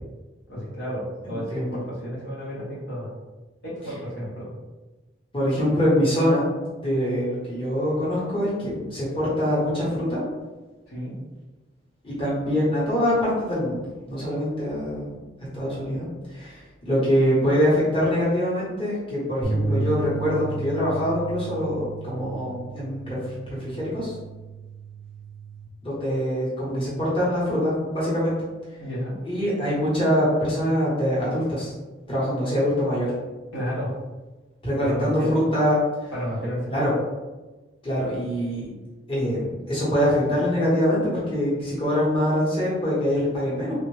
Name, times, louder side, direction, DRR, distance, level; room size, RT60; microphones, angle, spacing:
voice 1, 0.5-3.1 3.6-4.5 10.9-11.1 28.8-29.2 33.5-33.9 34.8-35.3 36.1-36.8, equal, 75° left, -7 dB, 1.3 m, -31 dB
voice 2, 1.2-1.8 5.3-6.5 6.7-10.2 12.0-13.8 14.1-15.2 15.5-16.1 16.3-23.2 23.5-24.1 25.8-28.3 29.2-31.7 32.1-33.1 34.6-35.8 36.7-36.9 37.8-38.6 39.1-43.7, equal, 25° left, -9 dB, 1.1 m, -24 dB
sound 1, 19.4-25.7, right 3 dB, 40° right, 0.4 m, -33 dB
3.4 x 2.4 x 3.2 m, 1.2 s
head